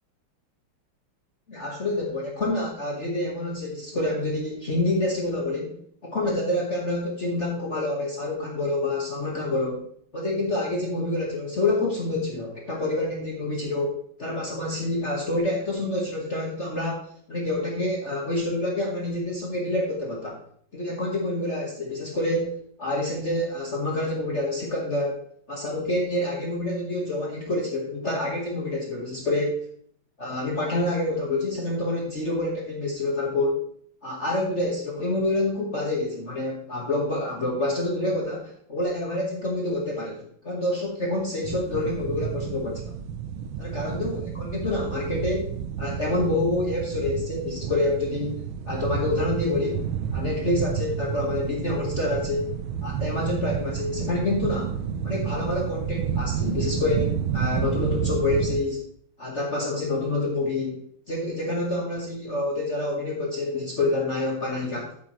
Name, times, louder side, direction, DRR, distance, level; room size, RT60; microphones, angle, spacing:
voice 1, 1.5-9.9 10.1-20.4 20.7-25.2 25.5-29.6 30.2-33.6 34.0-42.8 43.6-45.5 45.8-52.5 52.8-54.7 55.0-58.8 59.2-60.8 61.1-64.9, left 2 dB, 35° left, -2 dB, 1.6 m, -27 dB
sound 1, 41.4-58.6, right 8 dB, 80° right, 1.5 m, -30 dB
10.5 x 8.7 x 3.1 m, 0.62 s
omnidirectional pair, 2.3 m